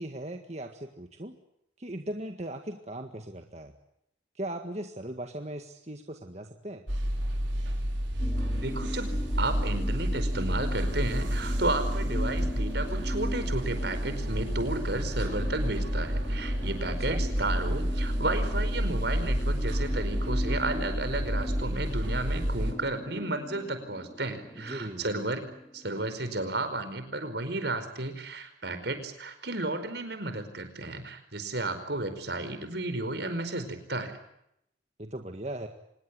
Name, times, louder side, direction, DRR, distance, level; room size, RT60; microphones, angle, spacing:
voice 1, 0.0-1.4 1.8-3.7 4.4-6.8 17.0-17.2 24.6-25.1 35.0-35.7, right 1 dB, 35° right, 5 dB, 1.8 m, -38 dB
sound 1, 6.9-22.7, equal, 90° right, 6.0 m, -30 dB
sound 2, 8.2-26.0, left 1 dB, 20° left, 3.6 m, -41 dB
voice 2, 8.5-25.4 25.7-34.1, right 2 dB, 70° right, 9 dB, 4.9 m, -33 dB
26.0 x 21.0 x 9.7 m, 0.78 s
head